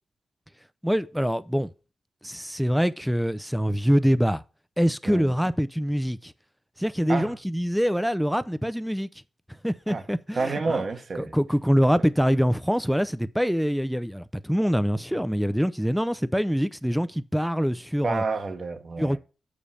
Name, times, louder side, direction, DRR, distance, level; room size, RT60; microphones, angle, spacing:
voice 1, 0.8-1.7 2.2-4.4 4.8-6.3 6.8-9.1 9.6-10.8 11.3-18.2 19.0-19.2, equal, ahead, 0.4 m, -24 dB
voice 2, 10.3-11.3 18.0-19.2, right 4 dB, 50° right, 1.0 m, -29 dB
6.8 x 5.1 x 5.5 m
wide cardioid pair, 105°, 0 cm